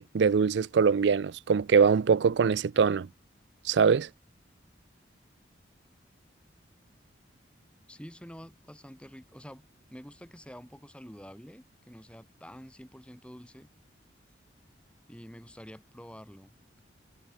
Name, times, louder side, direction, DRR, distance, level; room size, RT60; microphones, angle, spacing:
voice 1, 0.0-3.1 3.6-4.1, right 6 dB, 70° right, 0.4 m, -23 dB
voice 2, 7.9-9.6 9.9-13.7 15.1-16.5, equal, 5° left, 6.3 m, -48 dB
head